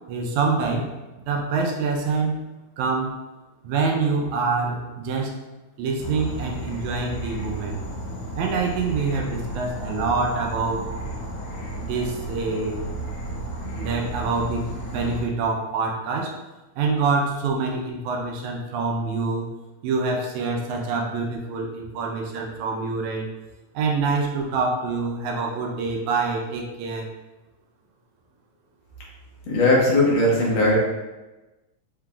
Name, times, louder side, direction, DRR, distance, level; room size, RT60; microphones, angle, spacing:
voice 1, 0.1-2.4 2.8-3.2 3.6-5.4 5.8-7.8 8.4-10.9 11.8-12.8 13.8-16.4 16.8-19.5 19.8-23.3 23.7-27.1, right 4 dB, 80° right, 1 dB, 1.9 m, -26 dB
Insect / Frog, 6.0-15.2, right 1 dB, 85° left, 2.6 m, -33 dB
voice 2, 29.5-30.7, left 1 dB, 65° left, -4 dB, 2.1 m, -18 dB
5.6 x 3.7 x 2.3 m, 1.1 s
omnidirectional pair, 3.6 m